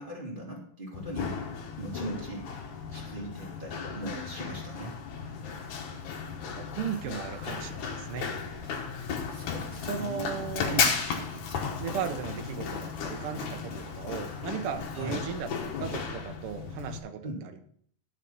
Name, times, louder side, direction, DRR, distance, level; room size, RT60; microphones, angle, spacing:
voice 1, 0.0-1.3 1.8-2.5 2.9-5.0 9.3-10.9 14.9-15.3 17.2-17.4, right 1 dB, 15° right, -3 dB, 2.4 m, -39 dB
Run, 0.9-17.0, left 6 dB, 70° left, 2.5 m, -35 dB
voice 2, 6.3-8.6 9.9-10.8 11.8-17.6, right 7 dB, 70° right, 6 dB, 1.4 m, -36 dB
11.5 x 5.7 x 5.5 m, 0.62 s
omnidirectional pair, 3.6 m